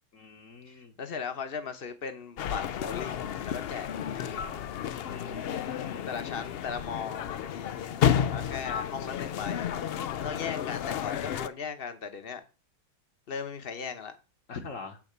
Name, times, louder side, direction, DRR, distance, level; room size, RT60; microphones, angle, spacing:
voice 1, 0.1-0.9 4.4-4.6 5.0-6.1 10.4-10.6 14.5-15.0, left 4 dB, 60° left, 1.4 m, -43 dB
voice 2, 0.7-4.6 6.1-9.6 10.2-12.4 13.3-14.2, left 6 dB, 45° left, 1.0 m, -38 dB
sound 1, 2.4-11.5, left 9 dB, 80° left, 0.5 m, -31 dB
7.5 x 4.1 x 6.6 m
omnidirectional pair, 1.6 m